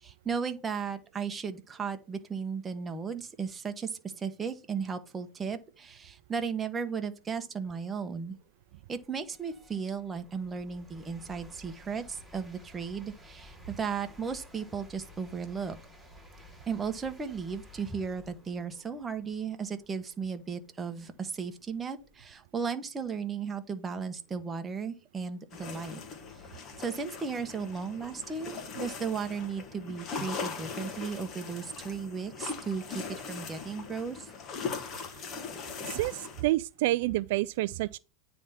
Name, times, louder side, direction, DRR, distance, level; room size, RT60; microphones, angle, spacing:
voice 1, 0.0-8.4 8.9-15.8 16.7-26.0 26.8-34.3, right 6 dB, 15° right, 1.1 m, -35 dB
sound 1, 6.9-7.0 7.6-22.4, left 1 dB, ahead, 4.0 m, -55 dB
sound 2, 25.5-36.4, left 5 dB, 35° left, 1.5 m, -40 dB
voice 2, 35.8-38.0, right 17 dB, 65° right, 0.3 m, -28 dB
9.3 x 3.5 x 5.6 m
supercardioid pair, 135°, 0 cm